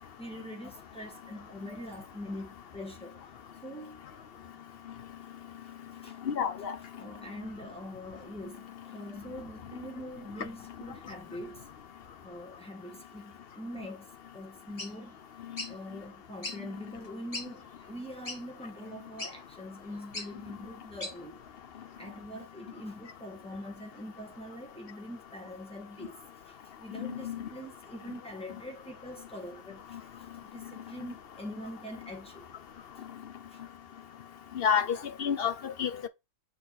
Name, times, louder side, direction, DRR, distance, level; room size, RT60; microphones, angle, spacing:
voice 1, 0.0-3.2 3.6-4.1 6.0-6.2 6.9-11.7 12.2-14.1 14.3-15.2 15.7-21.4 22.0-26.2 26.5-30.0 30.5-32.5 33.5-33.6, equal, 5° left, 1.9 m, -43 dB
voice 2, 6.3-6.7 27.2-27.4 34.6-36.1, left 7 dB, 55° left, 0.8 m, -29 dB
sound 1, 14.8-14.9 15.6-15.7 16.4-16.6 17.0-17.1 17.3-17.5 18.2-18.4 19.2-19.3 20.1-20.3 21.0-21.1, left 2 dB, 30° left, 1.3 m, -37 dB
7.0 x 4.3 x 4.0 m
omnidirectional pair, 1.3 m